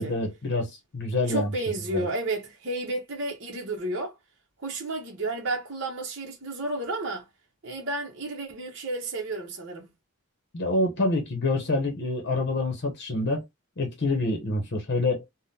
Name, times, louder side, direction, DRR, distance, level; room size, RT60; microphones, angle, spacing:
voice 1, 0.0-1.5 1.9-2.1 10.5-13.4 13.8-15.2, left 2 dB, 50° left, 0.8 m, -27 dB
voice 2, 1.3-4.1 4.6-7.2 7.6-9.9, right 2 dB, 55° right, 0.9 m, -32 dB
3.5 x 2.1 x 2.6 m
head